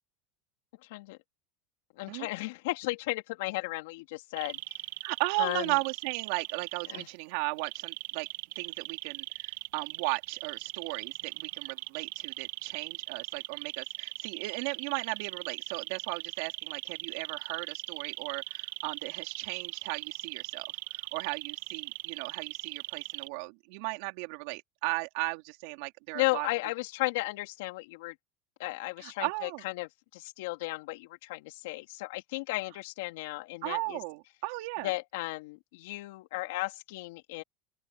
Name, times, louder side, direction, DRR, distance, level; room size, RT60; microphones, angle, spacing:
voice 1, 0.8-1.2 2.0-4.6 5.4-5.8 6.9-7.1 26.1-28.1 28.6-34.0 34.8-37.4, left 21 dB, 75° left, 3.3 m, -35 dB
sound 1, 4.4-7.0 7.6-23.3, right 18 dB, 80° right, 1.6 m, -39 dB
voice 2, 5.0-8.3 8.6-20.7 20.9-26.5 29.0-29.6 33.6-34.9, right 26 dB, 65° right, 3.7 m, -36 dB
open air
supercardioid pair, 160°, 0 cm